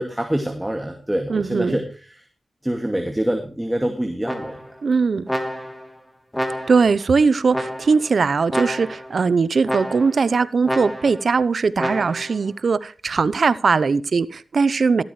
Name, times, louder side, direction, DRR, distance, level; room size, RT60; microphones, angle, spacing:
voice 1, 0.0-1.8 2.1-2.2 2.6-4.6, right 1 dB, 10° right, 2.4 m, -25 dB
voice 2, 1.3-1.8 4.8-5.3 6.7-15.0, right 4 dB, 65° right, 0.8 m, -20 dB
sound 1, 4.2-4.8 5.3-5.9 6.3-7.0 7.5-8.1 8.5-9.1 9.7-10.3 10.7-11.3 11.8-12.4, equal, 5° left, 3.2 m, -29 dB
13.5 x 13.0 x 3.3 m
cardioid pair, 50°, 0 cm